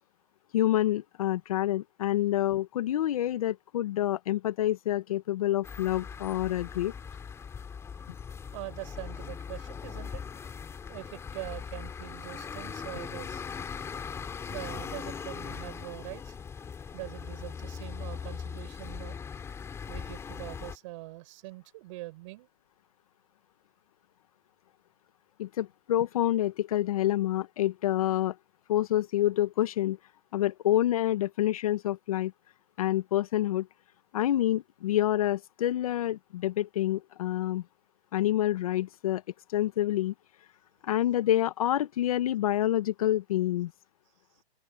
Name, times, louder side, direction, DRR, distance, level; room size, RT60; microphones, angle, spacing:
voice 1, 0.5-6.9 25.4-28.3 28.7-30.0 30.3-32.3 32.8-33.7 34.1-37.6 38.1-39.2 39.5-40.1 40.8-43.7, left 13 dB, 30° left, 1.4 m, -27 dB
sound 1, 5.6-20.8, left 6 dB, 10° left, 5.0 m, -40 dB
voice 2, 8.5-10.2 10.9-13.4 14.2-16.4 16.9-19.2 19.9-22.5, right 20 dB, 30° right, 5.0 m, -43 dB
open air
hypercardioid pair, 160°, 33 cm